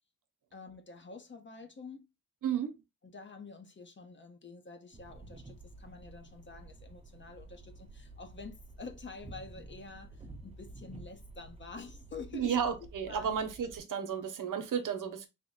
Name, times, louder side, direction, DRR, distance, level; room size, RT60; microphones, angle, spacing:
voice 1, 0.5-2.1 3.1-12.6 13.1-13.4, left 4 dB, 35° left, 0.8 m, -48 dB
voice 2, 2.4-2.8 12.3-15.3, right 7 dB, 65° right, 0.9 m, -33 dB
sound 1, 4.9-13.8, right 2 dB, 20° right, 0.7 m, -51 dB
3.6 x 2.2 x 3.8 m
cardioid pair, 95°, 34 cm